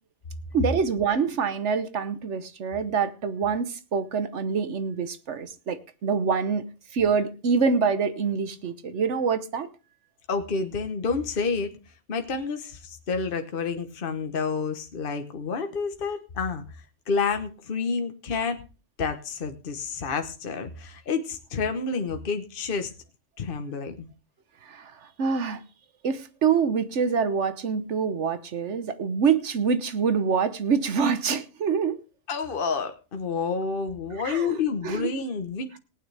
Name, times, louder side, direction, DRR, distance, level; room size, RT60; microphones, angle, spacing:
voice 1, 0.5-6.6 6.9-9.7 24.6-24.9 25.2-25.6 26.0-32.0 34.2-34.5 34.8-35.1, right 6 dB, 70° right, 1.3 m, -25 dB
voice 2, 10.3-11.7 12.1-18.6 19.0-22.9 23.4-24.1 32.3-35.8, left 5 dB, 50° left, 1.3 m, -29 dB
18.5 x 9.1 x 3.4 m
omnidirectional pair, 1.3 m